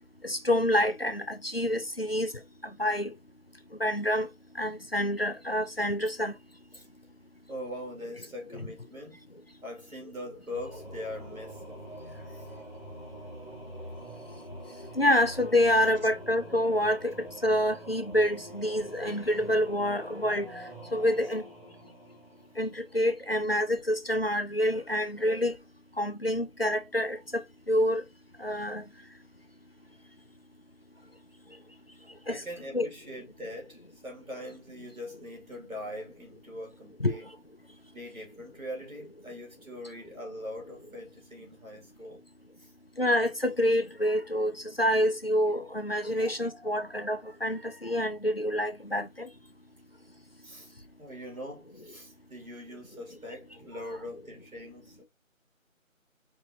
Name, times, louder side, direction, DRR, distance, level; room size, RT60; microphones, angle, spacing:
voice 1, 0.2-2.3 2.8-3.1 3.8-4.3 4.6-6.3 15.0-17.1 17.4-21.4 22.6-25.5 26.0-27.4 27.7-28.0 28.4-28.8 32.3-32.4 32.7-32.9 37.0-37.2 43.0-44.5 44.8-49.3, left 1 dB, 45° left, 0.5 m, -27 dB
voice 2, 7.5-9.2 9.6-11.8 12.3-12.5 32.3-37.3 37.9-42.2 42.6-42.7 46.1-46.3 50.4-50.7 51.0-55.1, left 1 dB, 85° right, 2.5 m, -42 dB
Singing / Musical instrument, 10.5-23.0, equal, 10° right, 1.3 m, -45 dB
4.7 x 2.8 x 2.7 m
figure-of-eight pair, 165°, 41 cm